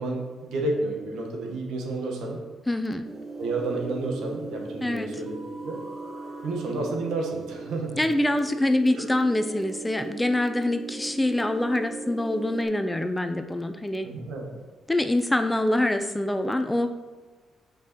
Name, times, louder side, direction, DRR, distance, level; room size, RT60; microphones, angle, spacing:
voice 1, 0.0-2.4 3.4-5.8 6.4-8.0 9.0-9.1 14.0-14.5, right 2 dB, 80° right, 1 dB, 1.7 m, -31 dB
voice 2, 2.7-3.0 4.8-5.1 8.0-14.1 14.9-16.9, left 1 dB, 10° left, 9 dB, 0.6 m, -25 dB
sound 1, 3.0-12.6, right 3 dB, 40° right, 2.1 m, -38 dB
7.1 x 5.3 x 4.6 m, 1.3 s
cardioid pair, 90°, 0 cm